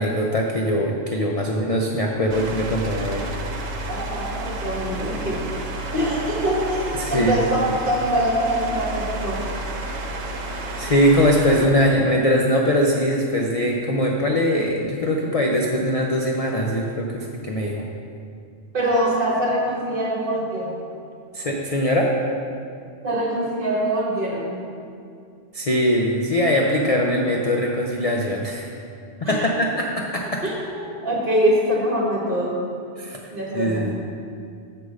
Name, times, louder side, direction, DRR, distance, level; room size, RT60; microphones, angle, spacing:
voice 1, 0.0-3.3 6.9-7.3 10.8-17.8 21.3-22.2 25.5-28.7 29.2-30.4 33.0-33.2 33.5-33.9, equal, 45° left, 0 dB, 0.5 m, -21 dB
sound 1, 2.3-11.7, right 2 dB, 85° right, 1.2 m, -31 dB
voice 2, 3.9-5.4 5.9-9.4 18.7-20.8 23.0-24.5 29.2-29.5 30.4-32.5 33.3-33.9, equal, 45° right, -3 dB, 1.5 m, -24 dB
6.8 x 4.8 x 6.4 m, 2.4 s
omnidirectional pair, 1.3 m